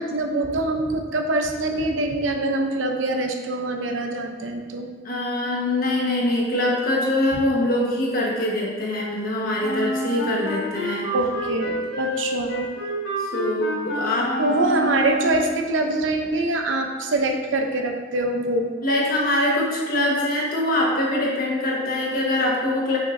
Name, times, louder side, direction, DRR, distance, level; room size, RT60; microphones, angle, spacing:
voice 1, 0.0-4.9 11.1-12.7 14.4-18.7, right 2 dB, 85° right, 3 dB, 0.7 m, -24 dB
voice 2, 5.0-11.1 13.2-14.3 18.8-23.0, left 1 dB, 50° left, -3 dB, 1.4 m, -23 dB
Wind instrument woodwind instrument, 9.6-15.6, equal, 65° left, 1.2 m, -28 dB
6.6 x 6.0 x 2.7 m, 1.4 s
head